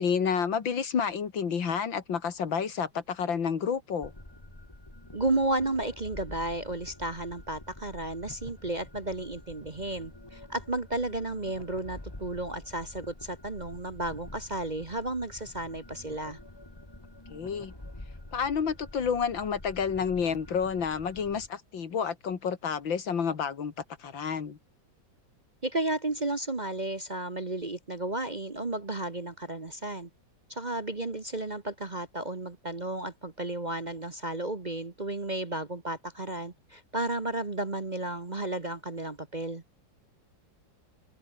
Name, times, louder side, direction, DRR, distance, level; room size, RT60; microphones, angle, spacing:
voice 1, 0.0-4.1 17.3-17.7 18.3-23.7 24.0-24.6, left 6 dB, 80° left, 2.8 m, -30 dB
sound 1, 4.0-21.5, left 1 dB, 10° left, 2.5 m, -47 dB
voice 2, 5.1-16.4 25.6-30.1 30.5-39.6, right 2 dB, 25° right, 1.2 m, -33 dB
omnidirectional pair, 2.1 m